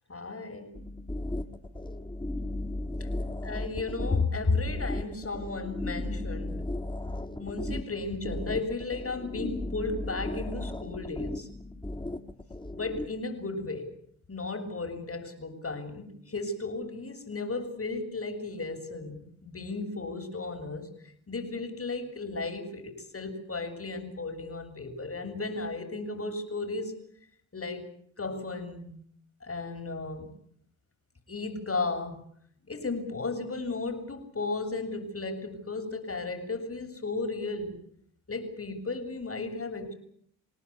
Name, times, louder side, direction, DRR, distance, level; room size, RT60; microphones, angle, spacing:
voice 1, 0.1-0.8 3.0-3.1 3.4-6.6 7.4-11.5 12.7-13.9 14.3-20.9 21.3-26.9 27.5-27.9 28.2-28.9 29.4-30.3 31.3-32.2 32.6-37.8 38.3-39.9, left 3 dB, 35° left, 7 dB, 7.5 m, -34 dB
sound 1, 0.7-13.1, left 1 dB, 10° left, 3.7 m, -35 dB
28.5 x 18.5 x 8.7 m, 0.65 s
supercardioid pair, 45°, 39 cm